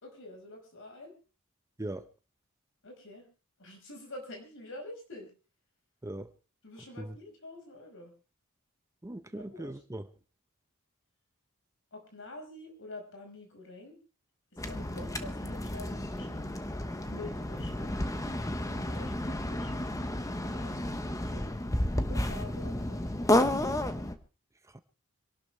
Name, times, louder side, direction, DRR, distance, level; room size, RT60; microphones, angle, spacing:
voice 1, 0.0-1.1 2.8-3.3 3.6-5.3 6.6-8.1 9.4-9.7 11.9-14.0 14.6-16.5 17.1-18.0 18.8-19.8 20.5-21.5 22.0-23.0, left 2 dB, 60° left, 5.2 m, -47 dB
voice 2, 6.0-6.3 7.0-7.2 9.0-10.1 24.6-24.8, right 1 dB, 15° right, 0.7 m, -40 dB
sound 1, 14.6-24.2, left 1 dB, 15° left, 1.0 m, -32 dB
26.0 x 12.0 x 3.4 m
head